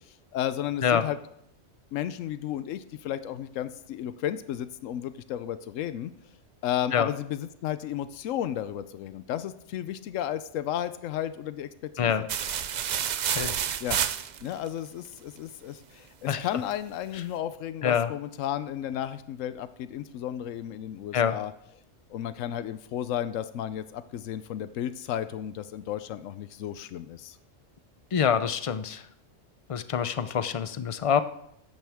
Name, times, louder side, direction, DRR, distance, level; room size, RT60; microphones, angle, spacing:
voice 1, 0.1-1.2 1.9-6.1 6.6-12.3 13.8-14.0 14.4-21.5 22.1-27.4, left 11 dB, 90° left, 13 dB, 1.0 m, -33 dB
sound 1, 12.3-14.7, right 8 dB, 60° right, 0.4 m, -29 dB
voice 2, 28.1-29.0 29.7-31.2, left 7 dB, 60° left, 12 dB, 0.3 m, -25 dB
13.5 x 10.5 x 3.5 m, 0.75 s
omnidirectional pair, 1.3 m